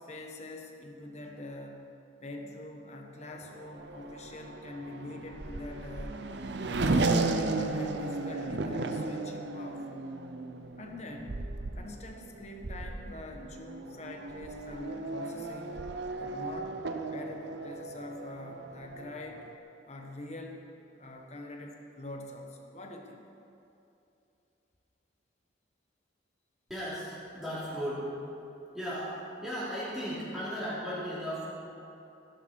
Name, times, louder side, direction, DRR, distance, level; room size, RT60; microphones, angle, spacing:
voice 1, 0.0-1.9 2.2-6.2 6.5-7.2 7.5-9.9 10.8-11.4 11.7-15.9 16.2-16.8 17.1-19.5 19.8-20.6 21.0-23.2, left 2 dB, 35° left, 2 dB, 1.3 m, -44 dB
Race car auto racing / Accelerating revving vroom, 3.4-19.6, right 2 dB, 65° right, 0.8 m, -35 dB
voice 2, 26.7-28.1 28.7-31.5, equal, ahead, -11 dB, 3.8 m, -36 dB
16.5 x 11.0 x 4.7 m, 2.8 s
head